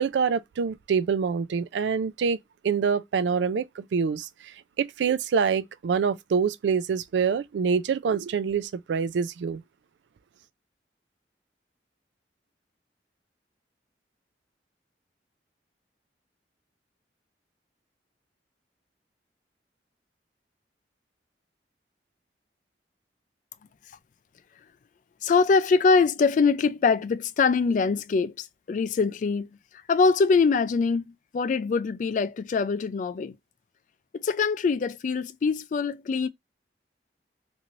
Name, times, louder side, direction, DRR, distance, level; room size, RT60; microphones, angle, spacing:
voice 1, 0.0-2.4 2.6-4.3 4.8-9.6, right 6 dB, 90° right, 0.3 m, -25 dB
voice 2, 25.2-29.5 29.9-31.0 31.3-33.4 34.1-36.3, left 4 dB, 45° left, 0.3 m, -23 dB
3.0 x 2.7 x 2.5 m
head